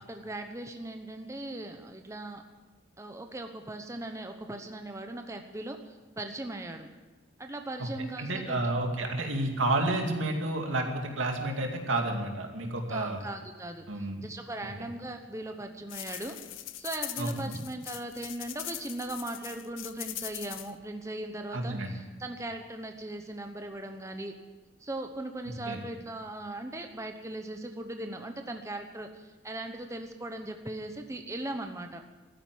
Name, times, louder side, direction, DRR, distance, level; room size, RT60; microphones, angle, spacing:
voice 1, 0.0-2.4 3.0-6.9 7.4-8.7 12.9-16.4 16.8-24.3 24.8-32.0, right 1 dB, 15° right, 5 dB, 0.9 m, -39 dB
voice 2, 8.2-13.2 13.9-14.2 17.2-17.6 21.5-22.0 25.7-25.8, right 2 dB, 80° right, 3 dB, 2.4 m, -30 dB
sound 1, 15.9-20.7, left 14 dB, 90° left, 0.7 m, -41 dB
13.0 x 10.0 x 9.1 m, 1.2 s
head